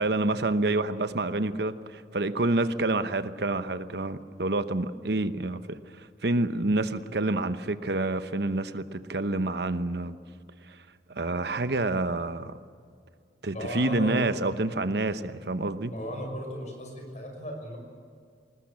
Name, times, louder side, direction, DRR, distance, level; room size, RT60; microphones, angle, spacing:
voice 1, 0.0-10.2 10.7-10.8 11.1-12.6 13.4-15.9, right 2 dB, 65° right, 11 dB, 1.0 m, -28 dB
voice 2, 13.5-14.2 15.9-17.8, equal, 40° left, 3 dB, 6.1 m, -35 dB
21.0 x 19.5 x 8.6 m, 2.2 s
head